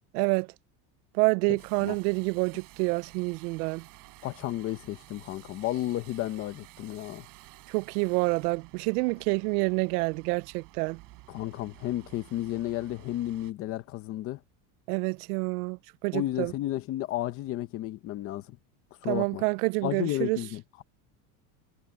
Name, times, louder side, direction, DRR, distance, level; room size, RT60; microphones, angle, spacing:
voice 1, 0.1-0.5 1.2-3.8 7.7-11.0 14.9-16.5 19.1-20.4, right 29 dB, 90° right, 0.6 m, -28 dB
voice 2, 1.5-1.9 4.2-7.3 11.3-14.4 16.1-18.6 19.0-19.4 19.8-20.8, left 14 dB, 30° left, 0.8 m, -33 dB
sound 1, 1.6-13.5, right 21 dB, 45° right, 4.9 m, -53 dB
cardioid pair, 180°, 44 cm